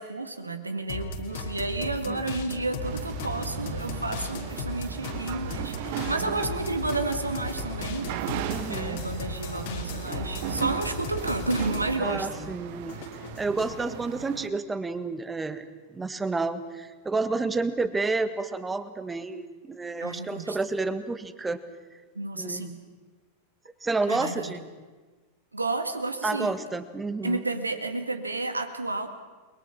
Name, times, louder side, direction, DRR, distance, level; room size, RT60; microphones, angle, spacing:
voice 1, 0.0-8.1 8.7-12.4 20.0-20.6 22.2-22.8 24.1-24.6 25.5-26.5 27.2-29.1, right 2 dB, 80° right, 8 dB, 2.0 m, -31 dB
sound 1, 0.9-12.1 12.4-13.8, left 3 dB, 50° left, 2.7 m, -36 dB
sound 2, 2.8-14.5, right 12 dB, 50° right, 1.1 m, -37 dB
voice 2, 8.5-9.0 12.0-13.0 13.4-21.6 22.4-22.7 23.8-24.6 26.2-27.4, right 3 dB, 10° right, 12 dB, 1.5 m, -30 dB
29.5 x 22.0 x 6.0 m, 1.3 s
figure-of-eight pair, 90°, 0 cm